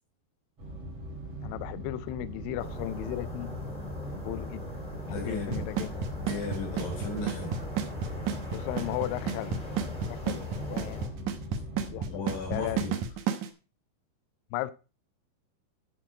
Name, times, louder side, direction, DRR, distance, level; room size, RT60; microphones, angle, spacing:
sound 1, 0.6-13.0, equal, 40° right, 4.1 m, -41 dB
voice 1, 1.4-3.7 4.1-4.6 5.1-5.9 8.5-11.1 11.8-12.2 12.5-12.8 14.5-14.7, left 14 dB, 90° left, 2.0 m, -36 dB
sound 2, 2.6-11.1, left 1 dB, 10° left, 2.6 m, -41 dB
voice 2, 5.0-5.6 6.3-7.5 12.1-13.0, left 2 dB, 60° left, 5.6 m, -35 dB
Drum kit / Snare drum / Bass drum, 5.5-13.5, right 7 dB, 75° right, 1.8 m, -30 dB
9.7 x 7.3 x 4.8 m
omnidirectional pair, 4.7 m